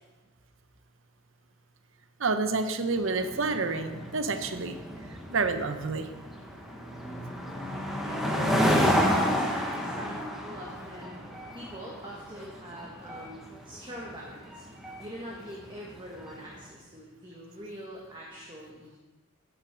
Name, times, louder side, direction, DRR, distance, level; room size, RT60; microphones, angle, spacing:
voice 1, 2.2-4.8 5.3-6.1, right 3 dB, 60° right, 9 dB, 0.7 m, -29 dB
sound 1, 2.9-16.5, equal, ahead, 1.1 m, -31 dB
voice 2, 8.0-9.0 9.3-11.1 11.5-13.4 13.6-14.6 15.0-19.0, equal, 20° right, -3 dB, 1.4 m, -44 dB
9.5 x 8.2 x 5.9 m, 1.2 s
head